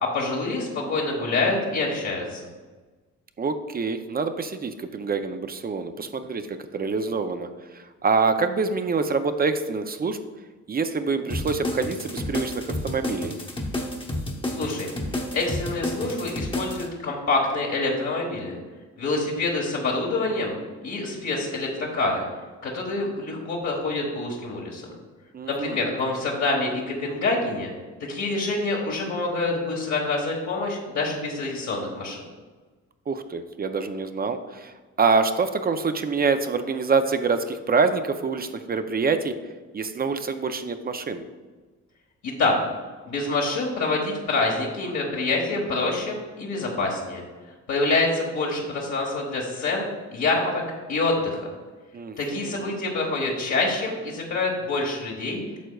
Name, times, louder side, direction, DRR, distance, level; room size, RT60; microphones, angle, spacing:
voice 1, 0.0-2.4 14.4-14.9 15.3-18.6 19.0-20.6 20.8-22.2 22.6-24.9 25.5-27.7 28.1-32.2 42.2-42.6 43.1-47.2 47.7-50.6 50.9-51.4 52.2-55.4, left 3 dB, 65° left, -3 dB, 1.4 m, -26 dB
voice 2, 3.4-10.2 10.7-13.3 25.3-25.9 33.1-39.3 39.7-41.2 51.9-52.7, right 4 dB, 30° right, 8 dB, 0.5 m, -26 dB
sound 1, 11.3-16.9, left 1 dB, 15° left, 1.0 m, -30 dB
9.2 x 6.3 x 2.3 m, 1.3 s
cardioid pair, 90°, 30 cm